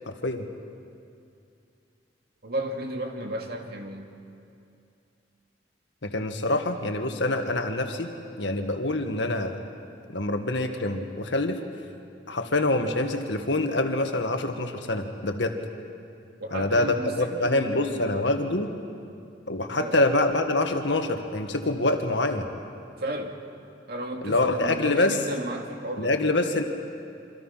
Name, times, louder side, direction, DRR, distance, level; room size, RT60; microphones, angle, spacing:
voice 1, 0.1-0.5 6.0-8.1 8.4-9.6 10.1-11.6 12.3-15.6 16.5-18.7 19.5-22.5 24.2-25.2 26.0-26.6, left 2 dB, 75° left, 5 dB, 1.8 m, -25 dB
voice 2, 2.4-4.1 16.4-18.2 19.7-19.9 23.0-23.3 23.9-26.1, right 1 dB, 55° right, 2 dB, 2.5 m, -34 dB
27.5 x 25.0 x 5.9 m, 2.5 s
head